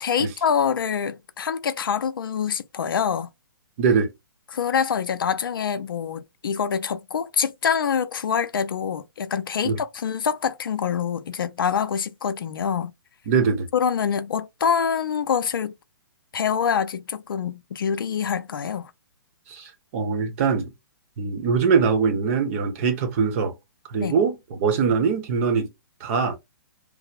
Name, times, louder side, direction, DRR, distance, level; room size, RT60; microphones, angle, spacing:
voice 1, 0.0-3.3 4.5-12.9 13.7-15.8 16.3-18.9 24.0-24.2, left 7 dB, 75° left, 0.5 m, -25 dB
voice 2, 3.8-4.1 9.6-9.8 13.3-13.7 19.5-20.7 21.2-23.5 23.9-25.7 26.0-26.4, right 5 dB, 40° right, 0.8 m, -22 dB
3.4 x 2.0 x 2.6 m
hypercardioid pair, 130°, 12 cm